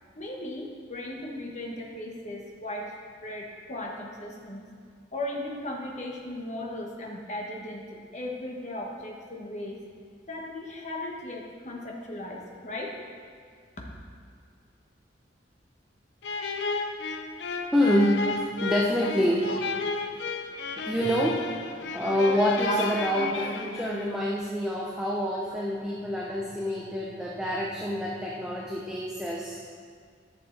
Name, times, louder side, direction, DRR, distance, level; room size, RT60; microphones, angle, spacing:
voice 1, 0.1-2.9 3.2-4.7 5.1-9.8 10.3-13.0 13.8-13.9 18.2-18.3 22.4-22.8 23.4-23.5 25.5-25.7, left 1 dB, 40° left, -1 dB, 1.2 m, -36 dB
sound 1, 16.2-24.3, left 4 dB, 65° left, 0.6 m, -33 dB
voice 2, 17.7-19.5 20.8-21.4 21.8-29.6, equal, 5° right, -4 dB, 0.7 m, -27 dB
11.0 x 6.6 x 3.9 m, 2.1 s
head